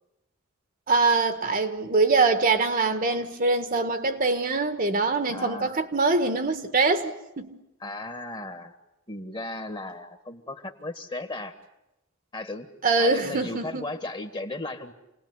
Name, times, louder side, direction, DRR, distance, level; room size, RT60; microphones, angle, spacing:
voice 1, 0.9-7.5 12.8-13.9, right 3 dB, 45° right, 1.5 m, -23 dB
voice 2, 5.3-5.7 7.8-8.7 9.1-11.5 12.3-12.7 13.0-14.9, left 2 dB, 25° left, 1.7 m, -35 dB
28.5 x 19.5 x 9.6 m
head